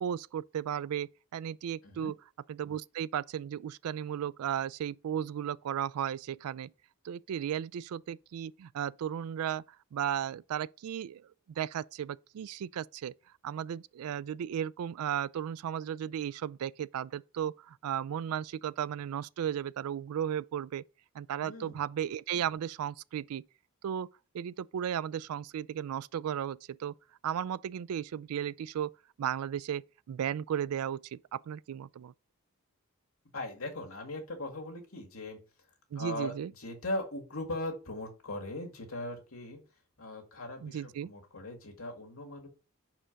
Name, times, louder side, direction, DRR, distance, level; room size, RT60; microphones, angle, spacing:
voice 1, 0.0-2.1 2.5-6.7 7.0-9.6 9.9-11.3 11.6-13.1 13.4-20.8 21.1-23.5 23.8-24.1 24.3-26.9 27.2-28.9 29.2-32.1 35.9-36.5 40.6-41.1, right 9 dB, 90° right, 0.3 m, -35 dB
voice 2, 21.4-21.8 33.3-35.4 36.0-39.6 40.0-42.5, left 1 dB, 75° left, 1.9 m, -39 dB
5.1 x 4.4 x 5.8 m
head